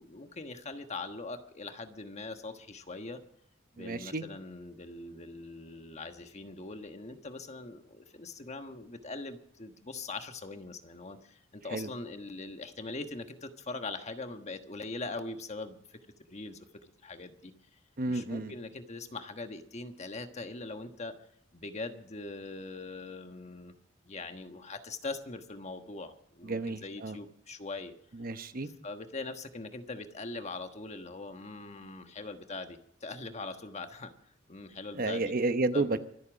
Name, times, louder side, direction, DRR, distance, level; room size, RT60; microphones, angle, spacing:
voice 1, 0.0-3.2 3.8-7.8 8.2-11.2 11.6-13.2 13.7-15.7 16.3-16.5 17.0-17.3 18.1-21.1 21.6-23.7 24.1-26.1 26.4-27.9 28.8-32.7 33.0-34.1 34.5-35.3 35.7-36.0, left 3 dB, 35° left, 7 dB, 1.3 m, -41 dB
voice 2, 3.8-4.2 11.7-11.9 18.0-18.5 26.4-27.2 28.2-28.7 35.0-36.0, right 2 dB, 50° right, 10 dB, 0.9 m, -31 dB
25.0 x 8.5 x 5.1 m, 0.70 s
head